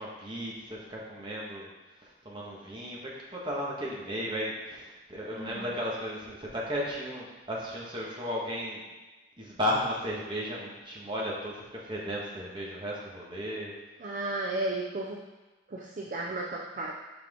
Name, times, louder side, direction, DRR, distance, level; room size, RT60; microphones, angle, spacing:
voice 1, 0.0-1.7 2.0-8.8 9.4-13.7, equal, 25° right, -4 dB, 1.4 m, -35 dB
Sigh, 5.2-5.8, equal, ahead, 1.2 m, -43 dB
voice 2, 14.0-15.2 15.7-16.9, right 2 dB, 40° right, -1 dB, 0.5 m, -33 dB
6.1 x 5.7 x 3.6 m, 1.2 s
head